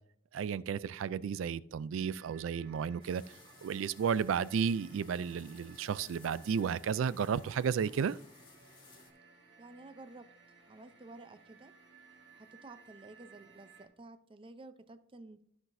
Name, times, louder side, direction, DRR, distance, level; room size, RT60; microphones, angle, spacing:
voice 1, 0.3-3.2 3.6-8.2, right 7 dB, 85° right, 0.3 m, -33 dB
sound 1, 1.9-13.9, right 5 dB, 60° right, 1.8 m, -60 dB
sound 2, 3.0-9.1, left 4 dB, 25° left, 1.8 m, -59 dB
voice 2, 9.6-10.3 10.7-11.7 12.3-15.4, right 2 dB, 25° right, 0.5 m, -52 dB
13.5 x 5.9 x 2.6 m
head